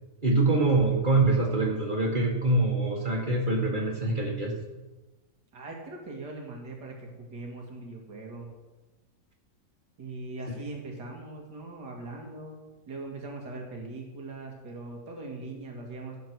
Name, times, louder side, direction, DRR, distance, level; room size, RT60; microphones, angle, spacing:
voice 1, 0.2-4.6, right 2 dB, 30° right, 0 dB, 1.9 m, -24 dB
voice 2, 5.5-8.5 10.0-12.6 12.9-16.2, right 2 dB, 70° right, 0 dB, 2.7 m, -40 dB
16.5 x 7.4 x 4.7 m, 1.2 s
omnidirectional pair, 1.9 m